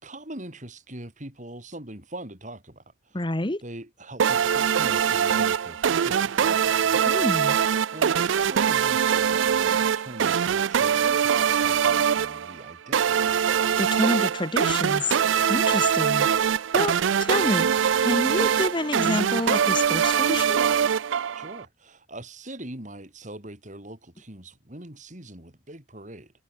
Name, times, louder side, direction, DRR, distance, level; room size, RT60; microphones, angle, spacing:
voice 1, 0.0-3.2 3.6-7.1 7.9-13.2 16.7-16.9 21.3-26.3, right 1 dB, 40° right, 4.9 m, -42 dB
voice 2, 3.1-3.6 7.1-7.6 13.8-15.2 15.5-16.3 16.7-17.7 18.0-20.6, left 2 dB, 25° left, 1.3 m, -28 dB
sound 1, 4.2-21.6, right 8 dB, 85° right, 0.4 m, -23 dB
head